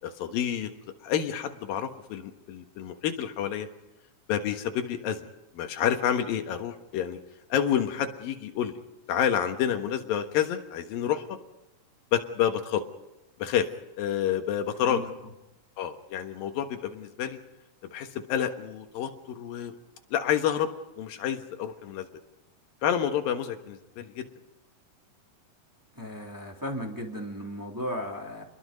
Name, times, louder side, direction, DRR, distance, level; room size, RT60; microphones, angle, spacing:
voice 1, 0.0-0.7 1.0-3.7 4.3-5.3 5.5-7.2 7.5-8.7 9.1-11.3 12.1-12.8 13.4-13.7 14.0-15.0 15.8-17.4 17.9-19.7 20.1-20.7 21.0-22.1 22.8-24.3, left 9 dB, 90° left, 6 dB, 3.3 m, -29 dB
voice 2, 26.0-28.4, equal, 5° right, -1 dB, 2.7 m, -35 dB
29.0 x 21.5 x 5.3 m, 0.94 s
omnidirectional pair, 4.0 m